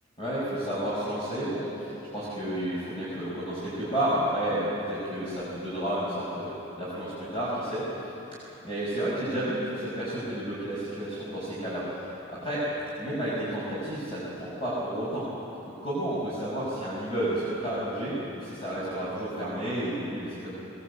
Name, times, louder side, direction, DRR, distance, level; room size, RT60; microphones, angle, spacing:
voice 1, 0.2-6.5 6.8-7.8 8.6-11.8 12.4-12.6 13.0-15.3 15.8-20.5, right 1 dB, 25° left, -10 dB, 6.3 m, -31 dB
22.0 x 21.5 x 8.5 m, 3.0 s
head